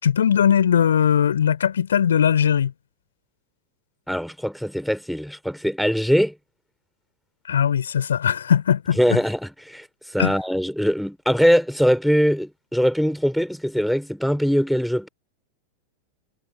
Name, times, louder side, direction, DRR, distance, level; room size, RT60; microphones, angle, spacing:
voice 1, 0.0-2.7 7.5-9.2 10.2-10.3, left 8 dB, 65° left, 4.8 m, -19 dB
voice 2, 4.1-6.3 9.0-9.9 10.1-15.1, equal, ahead, 3.1 m, -22 dB
figure-of-eight pair, 90°, 0 cm